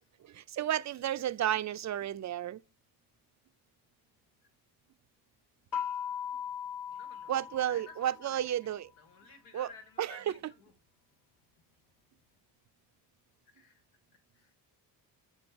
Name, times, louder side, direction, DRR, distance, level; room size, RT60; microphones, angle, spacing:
voice 1, 0.2-2.6 7.3-8.9 9.5-9.7 10.0-10.3, right 11 dB, 40° right, 0.4 m, -32 dB
sound 1, 5.7-8.4, left 8 dB, 45° left, 1.0 m, -38 dB
voice 2, 6.9-10.7 13.5-13.8 14.3-14.5, left 4 dB, 90° left, 1.6 m, -54 dB
7.1 x 4.4 x 4.4 m
supercardioid pair, 65°, 47 cm